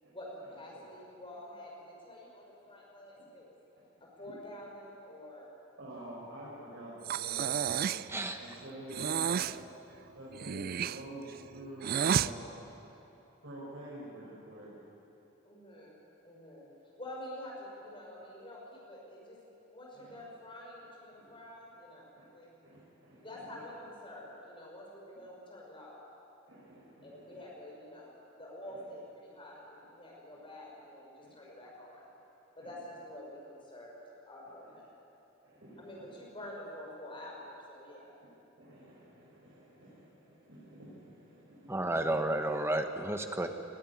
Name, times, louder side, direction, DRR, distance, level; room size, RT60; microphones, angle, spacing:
voice 1, 0.1-3.6 4.0-5.5 15.4-16.7 17.0-19.4 19.7-22.5 23.2-26.0 27.0-32.1 32.6-34.0 34.3-34.9 35.8-38.2, left 1 dB, 25° left, -3 dB, 5.7 m, -48 dB
voice 2, 5.8-7.9 8.4-9.6 10.1-12.7 13.4-14.8 19.9-20.2 22.2-22.3 22.6-23.6 26.5-27.5 28.6-28.8 31.2-31.3 32.6-32.7 34.6-34.7 35.4-36.2 38.6-42.2, right 1 dB, 75° right, -9 dB, 5.7 m, -48 dB
Breathing, 7.0-8.1 8.9-9.6 10.3-12.3, right 8 dB, 50° right, 0.4 m, -31 dB
voice 3, 41.7-43.5, right 1 dB, 15° right, 6 dB, 1.1 m, -31 dB
20.5 x 13.0 x 9.7 m, 2.9 s
head